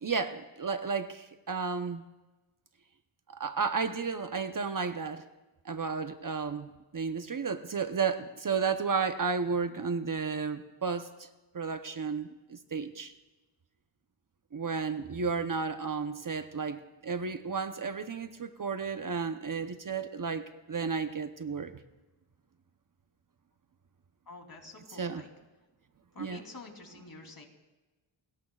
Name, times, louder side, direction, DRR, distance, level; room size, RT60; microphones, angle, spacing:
voice 1, 0.0-2.1 3.3-5.3 5.6-11.3 11.5-13.1 14.5-21.8 25.0-25.2 26.2-26.4, right 5 dB, 40° right, 8 dB, 0.9 m, -33 dB
voice 2, 24.3-25.3 26.1-27.4, left 3 dB, 45° left, 2 dB, 3.3 m, -48 dB
27.5 x 20.5 x 2.4 m, 1.1 s
wide cardioid pair, 85°, 48 cm